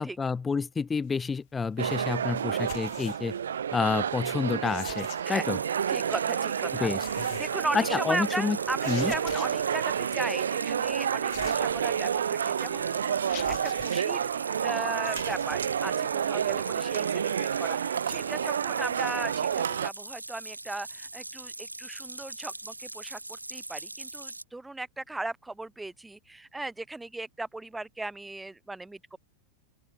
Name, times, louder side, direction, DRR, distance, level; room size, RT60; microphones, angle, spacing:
voice 1, 0.0-3.3 3.7-5.6 6.8-7.1 7.7-8.6 8.9-9.1, left 5 dB, 15° left, 1.7 m, -29 dB
sound 1, 1.8-19.9, right 8 dB, 65° right, 0.7 m, -30 dB
sound 2, 2.6-3.4 4.6-5.4 6.9-7.7 8.8-9.8 11.3-12.2 12.7-12.8 13.3-14.2 15.0-15.5, left 40 dB or more, 45° left, 3.5 m, -44 dB
sound 3, 5.2-24.4, right 2 dB, 85° right, 1.6 m, -41 dB
voice 2, 5.9-14.3 14.6-29.2, right 2 dB, 5° right, 1.4 m, -37 dB
open air
figure-of-eight pair, 90°, 0 cm